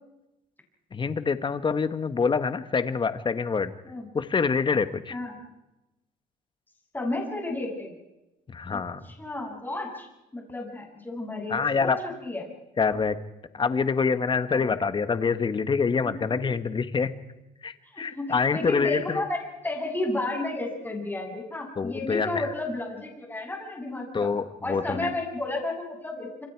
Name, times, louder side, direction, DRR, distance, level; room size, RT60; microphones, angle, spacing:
voice 1, 0.9-3.7 4.1-5.2 8.5-9.0 11.5-12.0 12.8-13.2 13.5-17.1 17.6-19.2 21.8-22.4 24.1-25.1, left 5 dB, 30° left, 11 dB, 1.5 m, -26 dB
voice 2, 6.9-7.9 8.7-10.1 10.3-12.4 12.9-13.0 14.5-14.9 16.0-16.4 17.9-24.3 24.6-26.5, left 2 dB, 10° left, 1 dB, 7.4 m, -32 dB
27.0 x 26.0 x 4.7 m, 0.96 s
cardioid pair, 110°, 17 cm